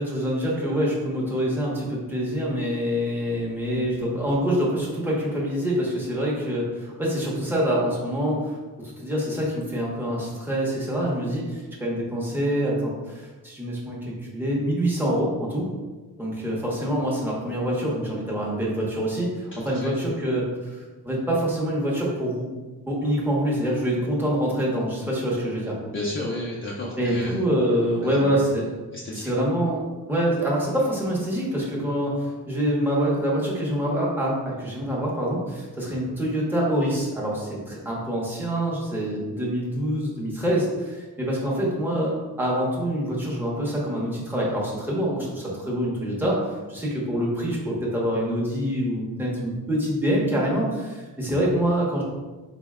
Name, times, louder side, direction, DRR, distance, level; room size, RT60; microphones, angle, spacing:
voice 1, 0.0-8.6 8.8-15.7 16.2-22.5 22.9-25.8 27.0-28.7 29.1-29.8 30.1-52.0, equal, 5° right, -5 dB, 0.7 m, -25 dB
voice 2, 19.5-19.9 25.9-27.4 28.0-28.5 28.9-29.3, left 1 dB, 30° left, -6 dB, 0.5 m, -32 dB
4.0 x 2.1 x 3.5 m, 1.3 s
wide cardioid pair, 155°, 39 cm